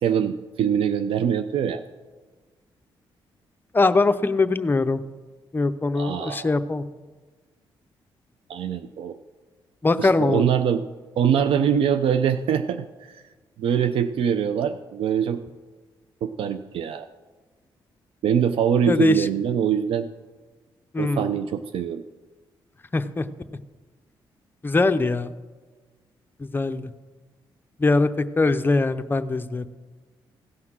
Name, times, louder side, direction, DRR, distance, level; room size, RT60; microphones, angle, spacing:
voice 1, 0.0-1.8 5.9-6.5 8.5-9.2 10.0-10.8 11.2-13.2 13.6-15.4 16.2-17.1 18.2-20.1 21.0-22.0, right 8 dB, 80° right, 10 dB, 0.5 m, -23 dB
voice 2, 3.7-5.0 5.5-6.8 9.8-10.4 18.9-19.3 20.9-21.3 22.9-23.2 24.6-25.3 26.4-26.9 27.8-29.6, left 3 dB, 20° left, 10 dB, 0.6 m, -22 dB
16.5 x 5.9 x 6.1 m, 1.3 s
cardioid pair, 95°, 9 cm